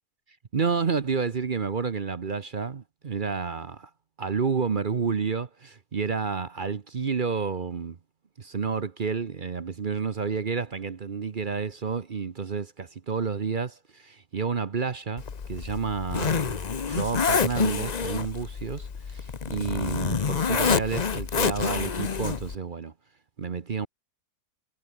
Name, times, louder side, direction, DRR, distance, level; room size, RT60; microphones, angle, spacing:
voice 1, 0.5-3.9 4.2-8.0 8.4-15.2 15.5-16.6 16.9-22.9 23.4-23.9, right 5 dB, 40° right, 0.9 m, -30 dB
Zipper (clothing), 15.2-22.5, left 6 dB, 35° left, 0.7 m, -28 dB
omnidirectional pair, 1.7 m